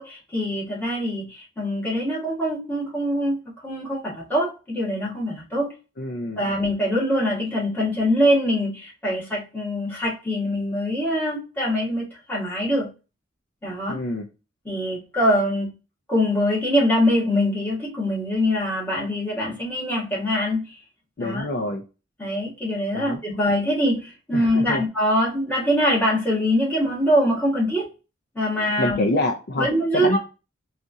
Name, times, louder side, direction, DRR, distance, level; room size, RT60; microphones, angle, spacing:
voice 1, 0.0-5.7 6.4-12.9 13.6-14.0 14.6-15.7 16.1-20.7 21.2-21.4 22.2-27.9 28.3-29.0 29.6-30.2, equal, 10° left, -5 dB, 1.4 m, -23 dB
voice 2, 6.0-6.4 13.9-14.3 21.2-21.8 22.9-23.2 24.3-24.8 28.6-30.2, left 1 dB, 50° left, 3 dB, 0.5 m, -26 dB
4.1 x 2.4 x 2.6 m, 0.30 s
head